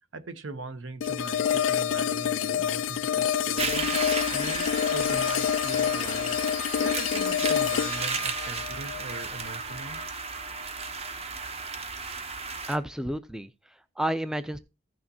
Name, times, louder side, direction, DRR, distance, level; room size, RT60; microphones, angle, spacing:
voice 1, 0.1-4.0 4.3-6.4 6.8-10.0, right 3 dB, 75° right, 0.9 m, -40 dB
sound 1, 1.0-10.0, left 9 dB, 80° left, 0.4 m, -27 dB
sound 2, 3.6-12.8, right 4 dB, 30° right, 0.8 m, -34 dB
voice 2, 12.7-14.6, right 1 dB, 5° right, 0.4 m, -31 dB
15.0 x 6.4 x 2.8 m
head